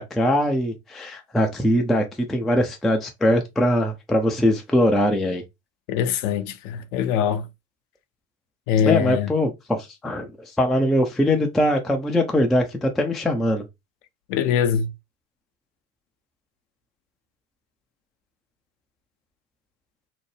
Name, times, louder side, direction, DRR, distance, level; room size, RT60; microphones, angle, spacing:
voice 1, 0.0-5.4 8.9-13.6, left 1 dB, ahead, 0.3 m, -22 dB
voice 2, 5.9-7.5 8.7-9.3 14.3-14.9, left 8 dB, 60° left, 0.6 m, -23 dB
2.8 x 2.0 x 3.1 m
figure-of-eight pair, 65°, 44 cm